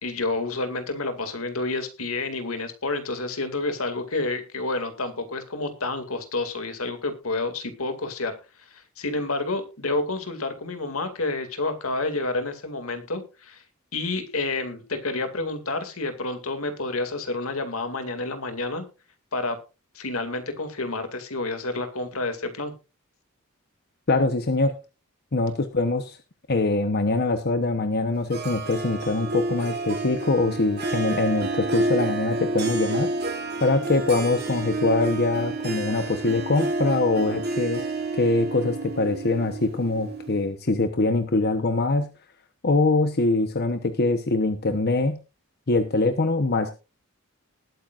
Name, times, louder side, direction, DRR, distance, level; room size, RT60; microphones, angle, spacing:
voice 1, 0.0-8.4 8.7-13.6 13.9-18.9 19.3-19.6 19.9-22.7, left 2 dB, 75° left, 8 dB, 2.3 m, -29 dB
voice 2, 24.1-24.7 25.3-26.2 26.5-33.1 33.6-37.8 38.1-42.1 42.6-45.2 45.7-46.7, left 2 dB, 50° left, 8 dB, 1.0 m, -23 dB
Harp, 28.3-40.5, right 2 dB, 50° right, 2.9 m, -30 dB
20.0 x 9.1 x 2.5 m, 0.30 s
head